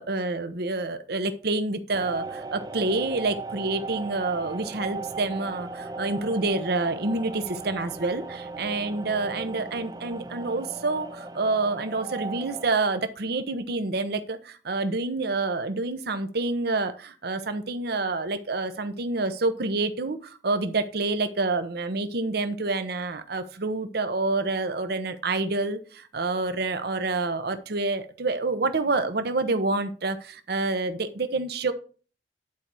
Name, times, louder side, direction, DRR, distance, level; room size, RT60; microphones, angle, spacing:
voice 1, 0.0-31.7, right 3 dB, 60° right, 10 dB, 0.9 m, -28 dB
sound 1, 1.9-12.7, right 3 dB, 20° right, 0.4 m, -37 dB
10.5 x 4.3 x 4.7 m, 0.39 s
head